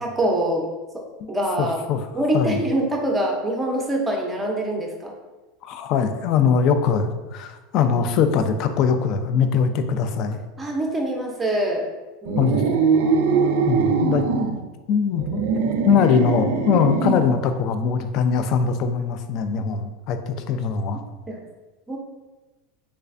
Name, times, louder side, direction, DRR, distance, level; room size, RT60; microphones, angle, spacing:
voice 1, 0.0-0.7 1.3-1.8 2.1-5.1 10.6-11.9 12.2-12.6 21.3-21.4 21.9-22.0, right 1 dB, 10° right, 1 dB, 0.6 m, -24 dB
voice 2, 1.6-2.0 2.3-2.6 5.6-10.4 12.4-12.6 13.7-14.2 14.9-15.4 15.9-21.0, left 6 dB, 50° left, 8 dB, 0.3 m, -21 dB
sound 1, 12.3-14.6 15.2-17.4, right 5 dB, 75° right, 0.3 m, -22 dB
3.2 x 3.2 x 2.4 m, 1.2 s
supercardioid pair, 135°, 0 cm